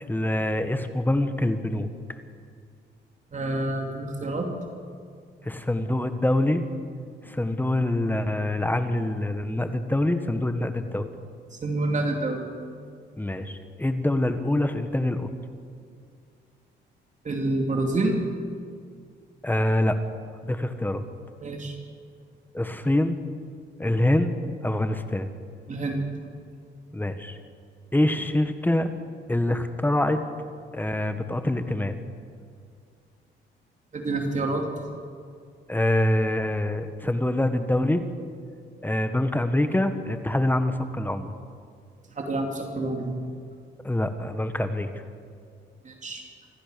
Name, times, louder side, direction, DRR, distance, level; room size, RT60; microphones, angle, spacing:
voice 1, 0.1-1.9 5.4-6.6 7.2-11.1 13.2-15.3 19.4-19.9 20.4-21.0 22.5-23.2 23.8-24.4 24.6-25.3 26.9-27.4 27.9-28.9 29.3-30.2 30.7-32.0 35.7-38.0 38.8-41.3 43.8-44.9, left 1 dB, 10° left, 8 dB, 1.5 m, -25 dB
voice 2, 3.3-4.5 11.6-12.4 17.2-18.1 21.4-21.8 25.7-26.1 33.9-34.7 42.1-43.1 45.8-46.2, right 2 dB, 40° right, 2 dB, 2.8 m, -27 dB
27.0 x 14.0 x 6.9 m, 2.2 s
cardioid pair, 90°, 20 cm